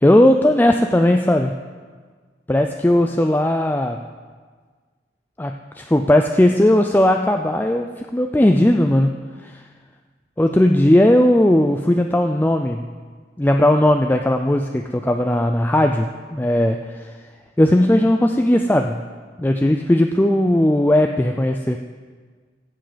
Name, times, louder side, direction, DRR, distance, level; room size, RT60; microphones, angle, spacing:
voice 1, 0.0-1.5 2.5-4.0 5.4-9.1 9.4-9.6 10.4-12.9 13.4-17.1 17.6-19.0 19.4-21.8, left 1 dB, 10° left, 4 dB, 0.4 m, -17 dB
16.0 x 7.6 x 5.1 m, 1.5 s
head